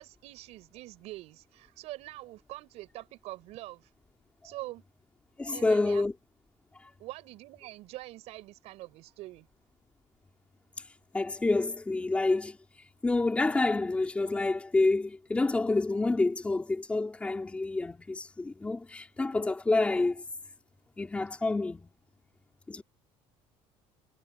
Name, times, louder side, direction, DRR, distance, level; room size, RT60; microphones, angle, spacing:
voice 1, 0.0-3.9 4.4-4.8 5.5-6.0 7.0-9.5, right 18 dB, 65° right, 7.2 m, -44 dB
voice 2, 5.4-6.1 6.7-6.9 10.8-20.2 21.0-21.9 22.7-22.8, left 3 dB, 10° left, 3.9 m, -28 dB
cardioid pair, 170°, 12 cm